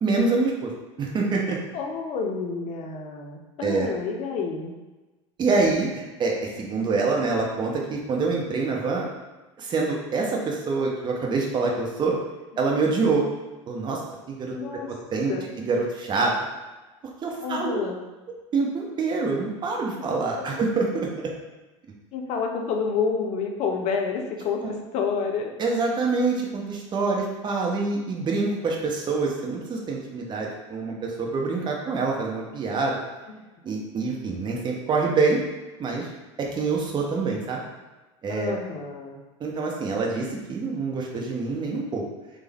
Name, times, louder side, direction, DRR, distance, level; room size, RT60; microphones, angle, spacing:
voice 1, 0.0-0.7 1.0-1.6 3.6-3.9 5.4-9.1 9.6-12.2 12.6-13.3 13.7-14.0 14.3-14.6 15.1-16.3 17.2-17.8 18.5-21.3 24.6-24.7 25.6-33.0 33.6-35.4 35.8-36.1 36.4-37.6 38.2-38.5 39.4-42.1, right 4 dB, 30° right, -1 dB, 0.7 m, -26 dB
voice 2, 1.7-4.7 14.5-14.9 15.3-15.5 17.4-18.0 22.1-24.6 24.9-25.5 33.3-33.4 38.3-39.2, left 5 dB, 45° left, 2 dB, 0.6 m, -29 dB
3.3 x 2.1 x 3.3 m, 1.2 s
hypercardioid pair, 85°, 16 cm